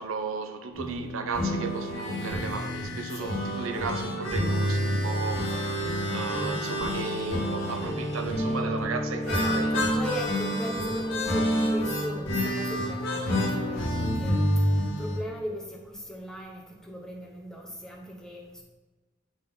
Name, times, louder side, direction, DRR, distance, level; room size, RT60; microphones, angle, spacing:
voice 1, 0.0-9.8, right 4 dB, 90° right, 0.6 m, -35 dB
sound 1, 0.7-15.2, equal, 65° left, 2.0 m, -28 dB
voice 2, 9.3-14.4 14.8-18.6, equal, 5° left, 0.8 m, -38 dB
8.9 x 3.6 x 3.9 m
head